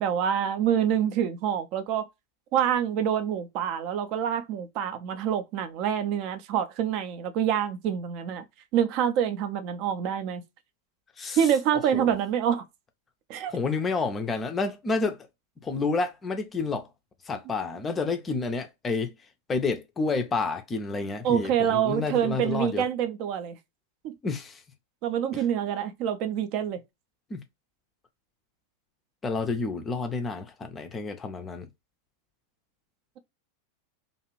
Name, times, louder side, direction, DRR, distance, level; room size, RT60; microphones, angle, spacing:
voice 1, 0.0-2.1 2.5-8.4 8.7-10.4 11.4-12.6 13.3-13.5 21.2-23.6 24.0-24.1 25.0-26.8, right 9 dB, 45° right, 0.5 m, -26 dB
voice 2, 13.5-15.3 15.6-16.9 17.3-19.1 19.5-22.8 24.2-24.6 25.3-25.4 27.3-27.4 29.2-31.7, left 4 dB, 20° left, 0.4 m, -29 dB
2.6 x 2.3 x 3.0 m
figure-of-eight pair, 90°, 0 cm